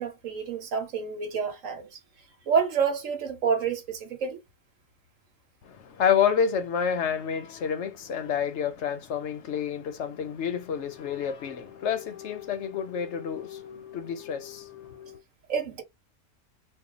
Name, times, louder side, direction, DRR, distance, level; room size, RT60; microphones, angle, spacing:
voice 1, 0.0-2.0 2.5-4.4 15.5-15.8, right 6 dB, 80° right, 1.3 m, -28 dB
voice 2, 5.6-15.2, left 7 dB, 65° left, 0.9 m, -29 dB
2.7 x 2.3 x 3.7 m
omnidirectional pair, 1.3 m